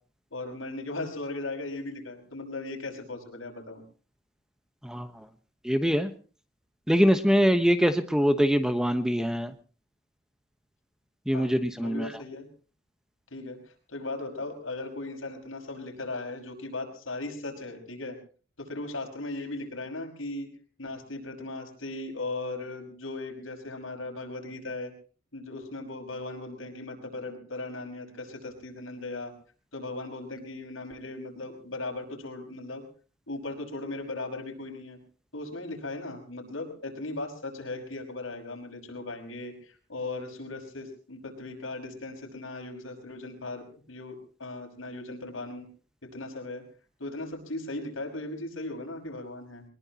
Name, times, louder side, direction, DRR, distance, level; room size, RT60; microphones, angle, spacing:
voice 1, 0.3-3.8 11.3-12.5 13.3-13.6 13.9-18.2 18.6-20.5 20.8-24.9 25.3-29.3 29.7-32.8 33.3-35.0 35.3-45.7 46.0-46.6 47.0-49.6, left 2 dB, 85° left, 3 dB, 5.9 m, -37 dB
voice 2, 5.6-6.1 6.9-9.5 11.3-12.1, equal, 5° right, 9 dB, 1.1 m, -23 dB
23.5 x 20.5 x 2.9 m, 0.38 s
head